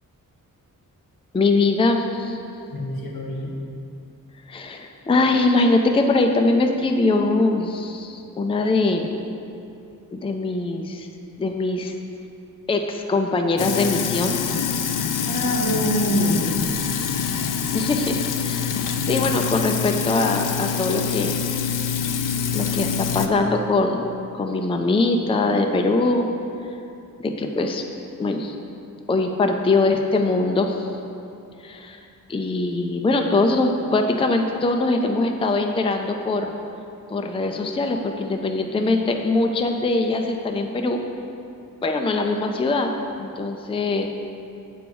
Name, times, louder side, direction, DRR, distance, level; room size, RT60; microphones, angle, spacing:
voice 1, 1.3-2.4 4.5-9.1 10.1-11.1 11.4-11.9 12.7-14.4 17.7-18.8 19.1-21.4 22.5-24.0 24.4-26.3 27.2-27.8 28.2-28.5 29.1-30.9 31.6-32.0 32.3-36.5 37.1-41.0 41.8-42.9 43.2-44.1, left 2 dB, 15° left, 3 dB, 0.4 m, -22 dB
voice 2, 2.7-3.5 15.2-16.8, equal, 85° left, -1 dB, 1.5 m, -24 dB
Sink (filling or washing), 13.6-23.3, left 7 dB, 65° left, 0.5 m, -25 dB
7.9 x 4.7 x 7.0 m, 2.7 s
wide cardioid pair, 145°, 34 cm